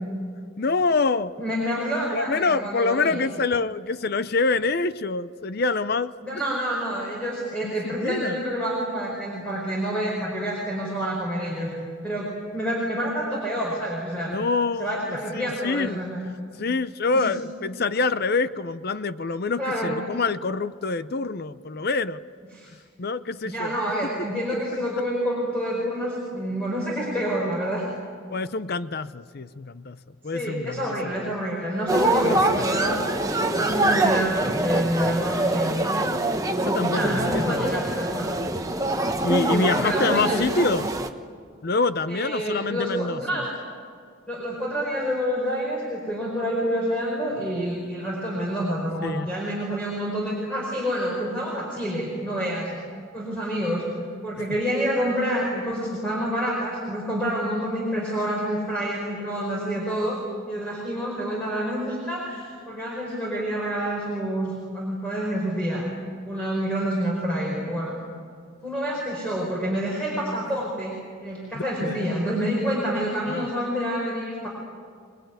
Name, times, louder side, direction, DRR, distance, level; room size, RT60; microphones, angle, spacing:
voice 1, 0.6-1.3 2.1-6.4 7.6-8.4 14.3-16.0 16.6-22.2 23.0-23.7 28.3-30.0 30.2-30.9 32.2-32.7 36.6-37.8 39.2-40.9 41.6-43.2 49.0-49.3 71.8-72.1 73.3-73.5, left 3 dB, 45° left, 14 dB, 0.6 m, -26 dB
voice 2, 1.4-3.3 6.2-11.7 12.0-14.3 14.8-16.2 17.1-17.3 19.6-19.9 22.5-22.7 23.4-27.9 30.3-35.9 36.7-38.2 39.5-40.5 42.1-43.5 44.3-52.7 53.1-53.8 54.2-60.2 60.5-65.8 66.3-67.9 68.6-70.9 71.2-74.5, equal, 5° left, -4 dB, 4.8 m, -28 dB
sound 1, 31.9-41.1, right 2 dB, 15° right, 1.1 m, -24 dB
26.0 x 20.0 x 9.4 m, 2.2 s
head